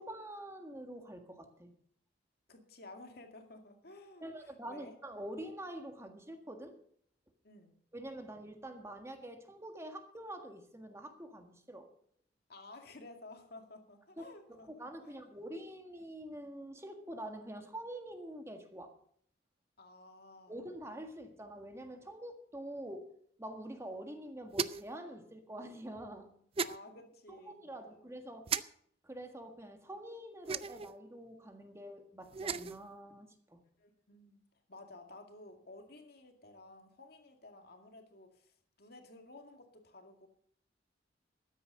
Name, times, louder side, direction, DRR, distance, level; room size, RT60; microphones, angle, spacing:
voice 1, 0.0-1.7 4.2-6.7 7.9-11.9 14.2-14.3 14.5-18.9 20.5-23.1 23.4-26.3 27.3-28.5 29.0-33.6, right 1 dB, 15° right, 6 dB, 1.6 m, -46 dB
voice 2, 2.5-5.0 7.4-7.8 12.5-14.7 15.0-15.2 19.8-20.6 26.6-28.0 33.8-34.4 34.7-40.3, left 2 dB, 55° left, 5 dB, 2.3 m, -54 dB
sound 1, 24.5-25.0 26.6-26.8 28.5-28.6 30.5-30.9 32.3-32.8, right 6 dB, 30° right, 0.4 m, -35 dB
13.5 x 9.9 x 6.5 m, 0.64 s
head